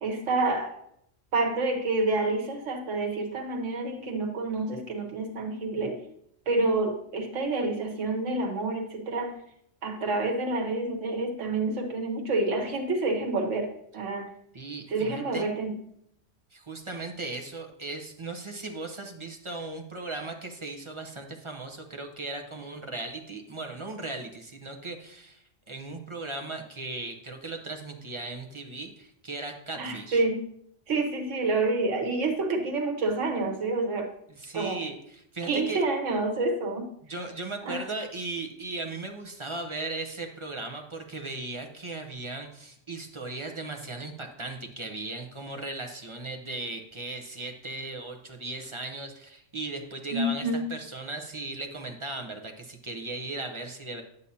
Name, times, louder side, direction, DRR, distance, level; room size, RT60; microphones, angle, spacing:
voice 1, 0.0-0.8 1.3-6.0 6.5-9.4 9.8-14.3 14.9-15.8 29.8-30.4 30.9-34.1 34.5-34.8 35.5-36.9 37.6-37.8 50.1-50.7, right 2 dB, 80° right, 1 dB, 1.5 m, -28 dB
voice 2, 14.5-15.5 16.5-30.2 34.3-35.8 37.1-54.0, right 2 dB, 30° right, 3 dB, 0.8 m, -37 dB
9.8 x 8.1 x 2.8 m, 0.72 s
omnidirectional pair, 1.2 m